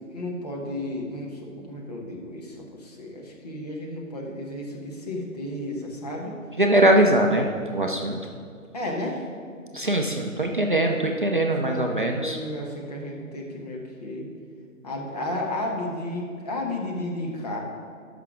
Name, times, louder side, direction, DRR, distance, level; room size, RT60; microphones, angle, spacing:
voice 1, 0.1-6.4 8.7-9.3 10.7-11.1 11.6-14.3 14.8-17.6, left 1 dB, 30° left, -1 dB, 1.1 m, -33 dB
voice 2, 6.6-8.2 9.7-12.4, right 1 dB, 40° right, 2 dB, 0.5 m, -22 dB
12.5 x 5.8 x 3.6 m, 2.3 s
figure-of-eight pair, 150°, 42 cm